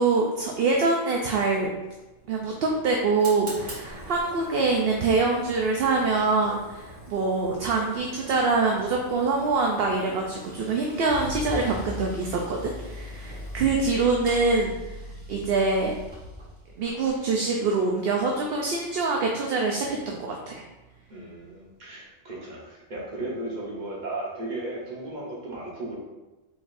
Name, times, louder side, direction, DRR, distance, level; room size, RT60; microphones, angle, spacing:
voice 1, 0.0-1.7 2.3-14.7 15.3-15.9 16.8-20.6, right 3 dB, 60° right, 1 dB, 0.7 m, -25 dB
Fire, 1.5-17.2, right 1 dB, 75° right, 2.1 m, -46 dB
Car / Engine starting / Accelerating revving vroom, 10.3-16.8, equal, 20° right, 0.7 m, -39 dB
voice 2, 21.1-26.0, right 2 dB, 40° right, -4 dB, 1.2 m, -35 dB
4.9 x 4.1 x 2.5 m, 1.1 s
omnidirectional pair, 1.3 m